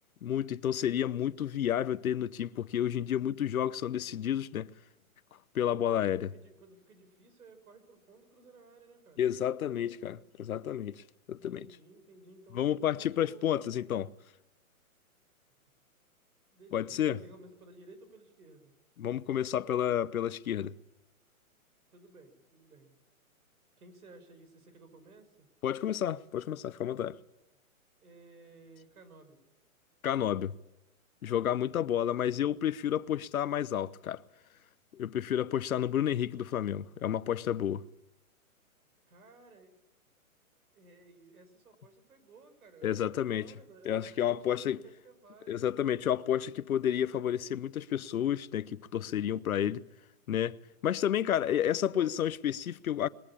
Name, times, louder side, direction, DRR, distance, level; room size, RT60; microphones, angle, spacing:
voice 1, 0.2-4.7 5.5-6.3 9.2-11.0 11.3-11.7 12.5-14.1 16.7-17.2 19.0-20.7 25.6-27.2 30.0-30.5 31.2-34.2 34.9-37.8 42.8-43.5 43.8-44.8 45.5-49.8 50.3-50.6 50.8-53.1, left 10 dB, 75° left, 0.9 m, -30 dB
voice 2, 6.0-9.2 11.5-13.6 16.5-18.7 21.9-22.9 23.8-25.5 28.0-29.4 39.1-39.7 40.7-46.2 51.9-52.1, right 3 dB, 85° right, 5.9 m, -56 dB
21.5 x 18.5 x 8.5 m
hypercardioid pair, 175°, 43 cm